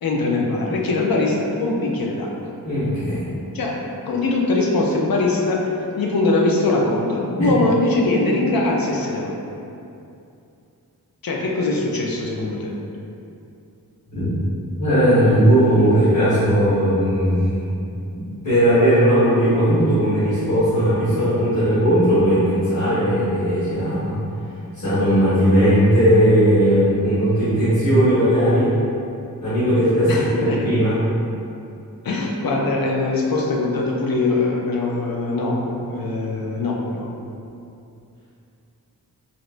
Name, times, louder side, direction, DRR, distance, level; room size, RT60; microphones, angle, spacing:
voice 1, 0.0-2.3 3.5-9.3 11.2-12.7 30.1-30.6 32.0-37.1, left 2 dB, 70° left, -1 dB, 0.5 m, -22 dB
voice 2, 2.6-3.2 7.3-7.5 14.1-14.3 14.8-17.8 18.1-24.2 24.7-28.7 29.4-31.0, equal, 50° left, -16 dB, 1.4 m, -17 dB
4.2 x 2.1 x 2.5 m, 2.6 s
wide cardioid pair, 85°, 37 cm